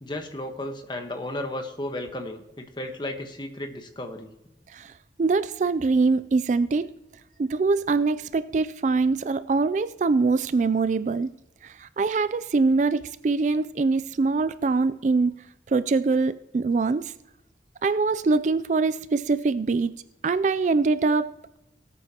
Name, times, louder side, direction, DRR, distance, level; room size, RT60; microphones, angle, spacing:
voice 1, 0.0-4.3, left 1 dB, 25° left, 5 dB, 1.2 m, -34 dB
voice 2, 5.2-6.8 7.4-11.3 11.6-15.4 15.7-17.1 17.8-19.9 20.2-21.6, right 4 dB, 40° right, 14 dB, 0.3 m, -23 dB
19.0 x 8.4 x 2.9 m, 0.88 s
head